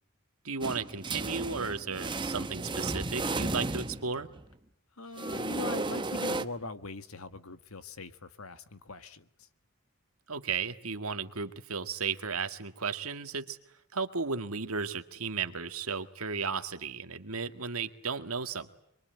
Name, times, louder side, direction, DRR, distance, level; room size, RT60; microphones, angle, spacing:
voice 1, 0.4-4.3 10.3-13.6 13.9-18.7, right 5 dB, 85° right, 2.0 m, -34 dB
sound 1, 0.6-4.4 5.2-6.4, right 2 dB, 20° right, 1.0 m, -34 dB
voice 2, 5.0-9.5, left 3 dB, 80° left, 1.7 m, -41 dB
26.5 x 23.0 x 9.2 m
head